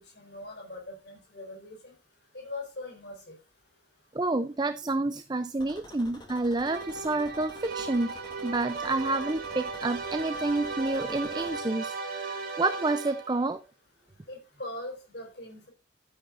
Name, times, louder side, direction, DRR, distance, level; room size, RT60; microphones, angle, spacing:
voice 1, 0.1-1.9 2.3-3.4 14.3-15.7, left 2 dB, 60° left, 2 dB, 4.7 m, -41 dB
voice 2, 4.1-13.6, right 2 dB, 20° right, 11 dB, 0.5 m, -29 dB
sound 1, 5.6-11.6, left 1 dB, 25° left, 2.5 m, -49 dB
sound 2, 6.6-13.5, right 4 dB, 50° right, 3.2 m, -36 dB
12.5 x 9.6 x 2.5 m, 0.28 s
head